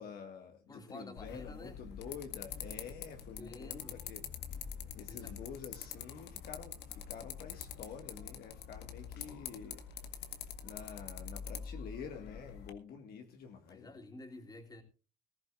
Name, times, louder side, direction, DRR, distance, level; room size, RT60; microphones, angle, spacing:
voice 1, 0.0-4.3 5.0-9.8 10.6-13.9, left 7 dB, 65° left, 1.9 m, -48 dB
voice 2, 0.7-1.8 3.4-4.0 5.1-5.3 13.7-14.8, left 2 dB, 20° left, 3.3 m, -50 dB
sound 1, 1.2-12.7, left 7 dB, 80° left, 1.9 m, -45 dB
19.5 x 15.0 x 2.5 m
cardioid pair, 110°, 17 cm